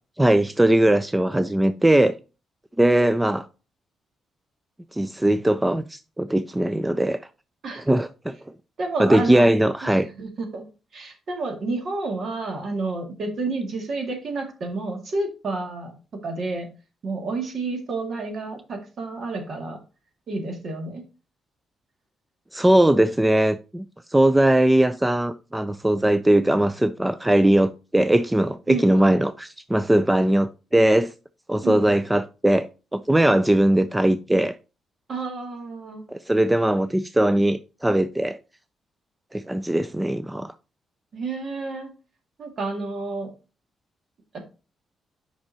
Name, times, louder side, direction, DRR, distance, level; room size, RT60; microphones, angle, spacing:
voice 1, 0.2-2.2 2.8-3.5 4.9-7.2 7.8-8.3 9.0-10.1 22.5-23.9 24.1-31.1 31.5-34.6 36.1-38.4 39.3-40.5, right 1 dB, 10° right, 0.3 m, -20 dB
voice 2, 8.8-9.5 9.8-10.6 10.9-15.9 16.2-16.7 17.0-19.8 20.3-21.0 28.7-29.2 31.6-31.9 35.1-36.1 41.1-41.9 42.4-43.3, right 3 dB, 50° right, 2.0 m, -30 dB
8.8 x 5.5 x 2.7 m
cardioid pair, 125°, 0 cm